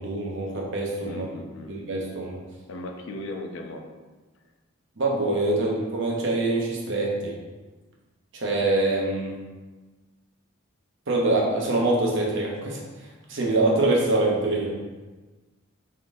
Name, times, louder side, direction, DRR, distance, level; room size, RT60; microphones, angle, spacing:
voice 1, 0.0-1.3 1.7-2.4 5.0-7.3 8.3-9.4 11.1-12.8 13.3-14.8, right 2 dB, 60° right, -3 dB, 0.8 m, -24 dB
voice 2, 1.0-1.7 2.7-3.8, left 1 dB, 60° left, 2 dB, 0.4 m, -37 dB
3.8 x 3.7 x 2.6 m, 1.3 s
head